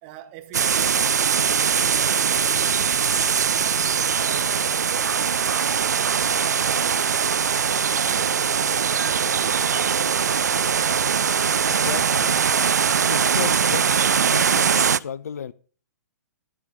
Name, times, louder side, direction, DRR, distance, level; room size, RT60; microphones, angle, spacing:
voice 1, 0.0-2.7 3.1-3.9 4.2-5.9 6.6-7.2 7.7-8.9 9.2-10.5, right 13 dB, 35° right, 1.2 m, -43 dB
sound 1, 0.5-15.0, right 7 dB, 70° right, 0.4 m, -21 dB
sound 2, 3.6-8.6, left 8 dB, 30° left, 1.4 m, -52 dB
voice 2, 11.6-12.4 13.0-15.5, left 7 dB, 65° left, 0.5 m, -34 dB
13.5 x 5.1 x 6.5 m
figure-of-eight pair, 115°, 9 cm